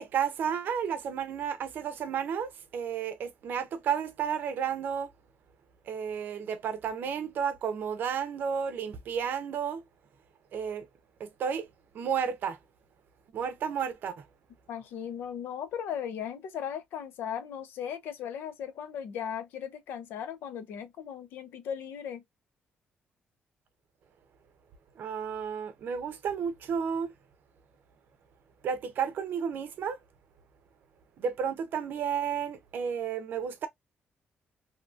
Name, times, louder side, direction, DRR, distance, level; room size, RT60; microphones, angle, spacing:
voice 1, 0.0-5.1 5.9-9.8 10.5-10.9 11.2-11.7 11.9-12.6 13.3-14.2 25.0-27.1 28.6-30.0 31.2-33.7, right 7 dB, 70° right, 0.6 m, -32 dB
voice 2, 14.7-22.2, left 8 dB, 90° left, 0.5 m, -37 dB
2.8 x 2.5 x 2.3 m
cardioid pair, 105°, 4 cm